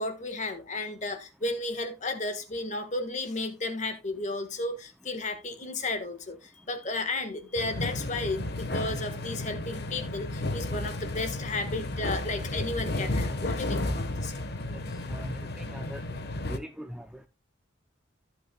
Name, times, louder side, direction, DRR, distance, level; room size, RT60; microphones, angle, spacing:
voice 1, 0.0-14.4, left 2 dB, 35° left, 1.5 m, -33 dB
sound 1, 7.6-16.6, left 1 dB, 50° left, 1.1 m, -33 dB
voice 2, 14.7-16.0 16.5-17.3, equal, 5° right, 0.5 m, -42 dB
14.5 x 8.3 x 2.2 m
head